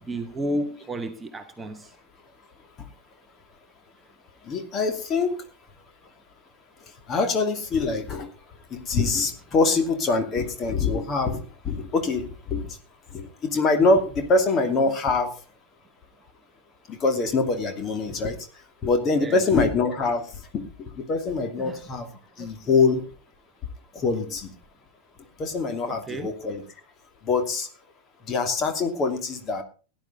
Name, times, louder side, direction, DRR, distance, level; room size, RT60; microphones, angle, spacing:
voice 1, 0.0-1.9 19.2-19.4 21.6-21.8 22.4-22.7 25.9-26.3, right 1 dB, 15° right, 1.2 m, -32 dB
voice 2, 4.4-5.4 7.1-8.3 8.7-12.8 13.1-15.3 16.9-18.3 18.8-22.1 22.4-23.0 23.9-24.5 25.4-26.6 27.2-27.7 28.3-29.6, left 3 dB, 30° left, 2.6 m, -24 dB
17.0 x 10.5 x 4.1 m
figure-of-eight pair, 90°, 0 cm